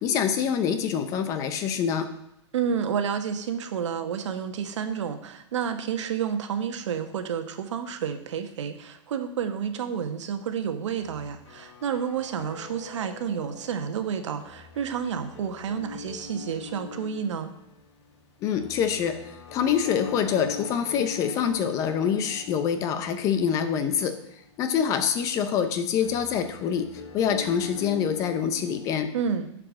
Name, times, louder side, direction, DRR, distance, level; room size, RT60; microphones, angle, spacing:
voice 1, 0.0-2.1 18.4-24.2 24.6-26.9 27.1-29.1, left 8 dB, 20° left, 9 dB, 0.6 m, -25 dB
voice 2, 2.5-17.5 29.1-29.5, right 7 dB, 75° right, 7 dB, 1.3 m, -30 dB
sound 1, 11.0-29.0, left 6 dB, 65° left, 1.3 m, -42 dB
9.0 x 5.0 x 7.3 m, 0.78 s
supercardioid pair, 165°, 16 cm